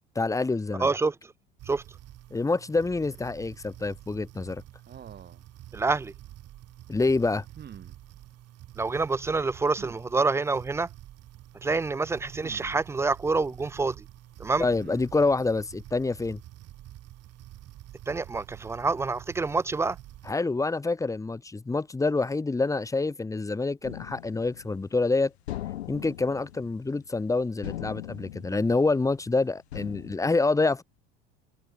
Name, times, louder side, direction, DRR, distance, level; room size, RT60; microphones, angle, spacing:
voice 1, 0.2-0.9 2.3-4.6 6.9-7.4 14.6-16.4 20.3-25.3 25.9-30.8, left 3 dB, 10° left, 0.7 m, -27 dB
voice 2, 0.8-1.3 1.7-1.8 5.7-6.1 8.8-10.9 11.6-14.0 14.4-14.7 18.1-20.0, right 3 dB, 10° right, 0.3 m, -27 dB
sound 1, 1.6-20.3, right 14 dB, 50° right, 2.7 m, -48 dB
sound 2, 4.9-5.5 7.5-8.0 9.7-10.0 12.3-12.8 14.6-15.1, right 8 dB, 30° right, 1.3 m, -46 dB
sound 3, 23.8-25.1 25.5-27.3 27.6-29.3 29.7-30.2, left 13 dB, 85° left, 1.1 m, -40 dB
hypercardioid pair, 70°, 31 cm